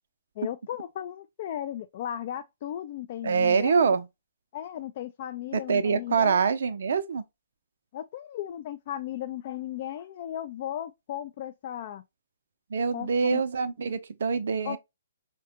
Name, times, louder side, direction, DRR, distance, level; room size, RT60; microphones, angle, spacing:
voice 1, 0.4-3.8 4.5-6.4 7.9-12.0 12.9-13.4 14.6-14.8, left 11 dB, 40° left, 0.3 m, -36 dB
voice 2, 3.2-4.1 5.5-7.2 12.7-14.8, right 5 dB, 55° right, 0.5 m, -25 dB
4.7 x 2.2 x 2.7 m
figure-of-eight pair, 125°, 0 cm